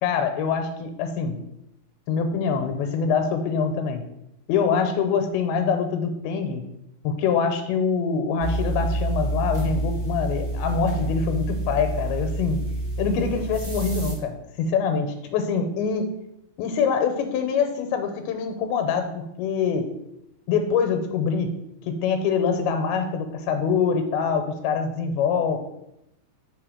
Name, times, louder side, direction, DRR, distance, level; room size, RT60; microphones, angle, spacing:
voice 1, 0.0-1.4 2.1-4.0 4.5-6.6 7.0-12.6 13.0-16.1 16.6-19.9 20.5-21.5 21.9-25.6, left 6 dB, 90° left, 6 dB, 2.6 m, -24 dB
sound 1, 8.4-14.1, right 1 dB, 40° right, 0.6 m, -28 dB
5.6 x 3.5 x 4.9 m, 0.82 s
omnidirectional pair, 4.3 m